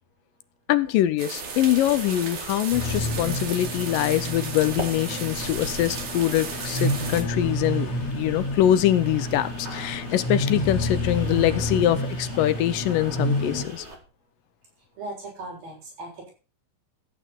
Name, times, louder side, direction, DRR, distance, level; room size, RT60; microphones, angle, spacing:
voice 1, 0.7-13.9, left 12 dB, 75° left, 13 dB, 2.3 m, -23 dB
sound 1, 1.2-7.2, right 5 dB, 65° right, 3.8 m, -35 dB
sound 2, 1.3-14.0, right 2 dB, 25° right, 1.9 m, -42 dB
sound 3, 2.7-13.6, left 1 dB, 50° left, 3.4 m, -29 dB
voice 2, 15.0-16.3, right 2 dB, 85° right, -3 dB, 9.2 m, -38 dB
14.5 x 8.7 x 4.5 m, 0.33 s
omnidirectional pair, 4.1 m